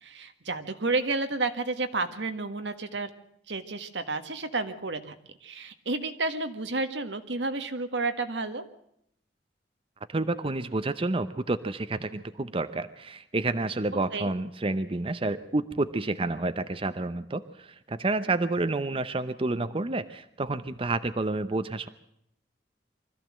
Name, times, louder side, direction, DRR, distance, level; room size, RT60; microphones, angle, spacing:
voice 1, 0.0-3.1 3.5-5.1 5.4-8.6 14.1-14.3, right 3 dB, 85° right, 8 dB, 1.6 m, -31 dB
voice 2, 10.1-21.9, right 2 dB, 30° right, 11 dB, 0.7 m, -29 dB
24.0 x 14.0 x 7.6 m, 0.74 s
head